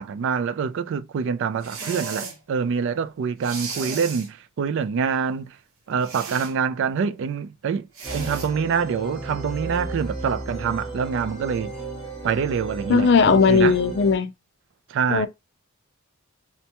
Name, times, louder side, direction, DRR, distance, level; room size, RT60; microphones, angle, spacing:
voice 1, 0.0-5.6 5.9-7.9 8.1-11.8 12.2-13.8 14.9-15.3, right 6 dB, 60° right, 0.3 m, -25 dB
sound 1, 1.6-2.4 3.4-4.3 6.0-6.5 7.9-8.5, right 5 dB, 75° right, 0.9 m, -34 dB
sound 2, 8.0-14.2, right 2 dB, 20° right, 2.1 m, -34 dB
voice 2, 12.9-14.3 15.1-15.3, left 5 dB, 55° left, 0.4 m, -17 dB
4.3 x 2.1 x 2.8 m
head